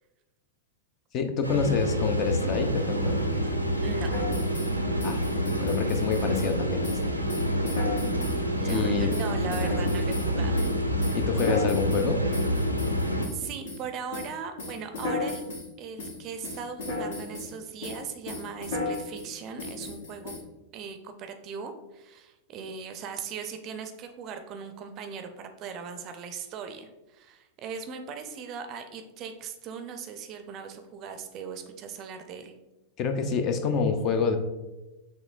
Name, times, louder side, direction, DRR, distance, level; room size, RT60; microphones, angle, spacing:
voice 1, 1.1-3.2 5.0-5.2 5.6-7.0 8.6-9.1 11.1-12.2 33.0-34.4, left 5 dB, 35° left, 7 dB, 0.5 m, -27 dB
sound 1, 1.4-13.3, equal, 90° right, 0.4 m, -27 dB
voice 2, 3.8-4.3 8.2-10.6 13.3-15.4 15.8-20.3 20.7-32.5, right 6 dB, 35° right, 7 dB, 0.5 m, -39 dB
sound 2, 4.1-4.7 5.0-6.5 6.8-7.0 7.3-8.4 8.7-10.3 10.6-13.8 14.1-14.3 14.6-15.7 16.0-16.2 16.4-17.5 17.8-18.0 18.3-19.3 19.6-20.4, left 3 dB, 60° left, 1.1 m, -35 dB
6.1 x 3.0 x 2.4 m, 1.0 s
figure-of-eight pair, 90°, 0 cm